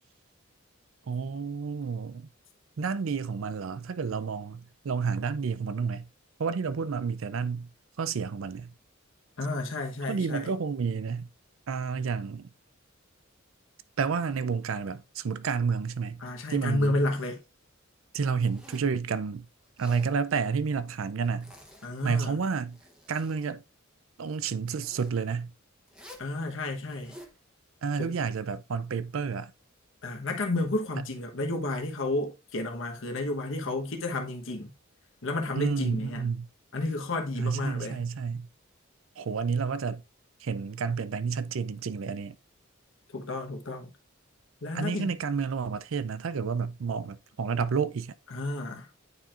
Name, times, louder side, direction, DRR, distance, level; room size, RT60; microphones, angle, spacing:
voice 1, 1.1-2.3 2.8-6.1 6.4-7.7 8.0-8.7 10.1-11.3 11.7-12.5 14.0-16.2 16.5-17.0 18.1-19.5 19.8-21.5 22.0-22.8 23.1-23.6 24.2-25.5 27.8-29.5 35.6-36.5 37.4-38.5 39.2-40.0 40.4-42.3 44.7-48.1, right 5 dB, 70° right, 0.5 m, -30 dB
voice 2, 9.4-10.5 16.2-17.4 21.8-22.4 26.2-27.2 28.0-28.1 30.0-34.7 35.2-36.3 36.7-38.0 43.1-43.9 44.6-45.1 48.3-48.9, left 2 dB, 65° left, 1.1 m, -31 dB
Zipper (clothing), 18.4-19.0 19.6-20.2 21.2-22.1 22.5-23.5 24.6-25.2 25.9-26.3 26.8-27.4, left 1 dB, 5° right, 0.9 m, -51 dB
9.5 x 4.4 x 2.5 m
head